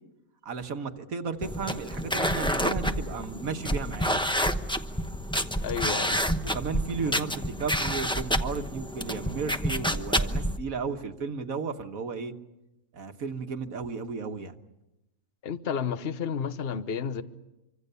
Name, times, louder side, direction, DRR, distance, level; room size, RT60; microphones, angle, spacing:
voice 1, 0.4-4.2 6.5-12.3 12.9-14.6, right 5 dB, 70° right, 7 dB, 1.7 m, -34 dB
sound 1, 1.4-10.6, equal, 5° left, 0.8 m, -29 dB
voice 2, 5.6-6.2 7.1-7.2 15.4-17.2, left 7 dB, 45° left, 12 dB, 1.2 m, -31 dB
26.0 x 25.0 x 6.9 m, 0.95 s
omnidirectional pair, 1.5 m